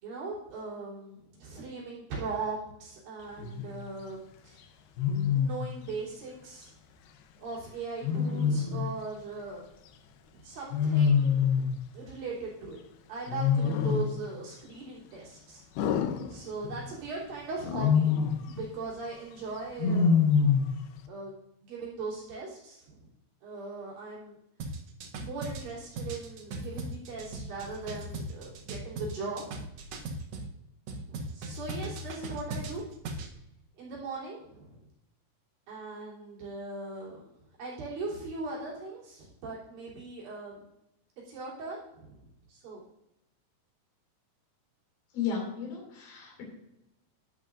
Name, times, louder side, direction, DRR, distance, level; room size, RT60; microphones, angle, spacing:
voice 1, 0.0-4.6 5.3-6.7 7.4-9.6 10.3-11.4 11.9-12.8 13.1-15.6 16.3-18.1 18.5-20.3 21.1-21.3 21.6-23.1 23.4-24.4 25.2-29.4 31.1-32.8 33.8-34.9 35.7-37.3 37.6-40.6 41.3-42.8, right 3 dB, 65° right, -6 dB, 5.0 m, -39 dB
Wild animals, 3.4-3.8 5.0-5.7 8.0-8.9 10.7-11.8 13.3-14.2 15.8-16.9 17.6-18.5 19.8-20.8, left 6 dB, 90° left, 2.9 m, -26 dB
sound 1, 24.6-30.5 30.9-33.3, right 2 dB, 80° right, 1.4 m, -38 dB
voice 2, 45.1-46.4, left 6 dB, 70° left, -1 dB, 4.4 m, -34 dB
11.5 x 10.0 x 2.6 m, 0.85 s
omnidirectional pair, 4.4 m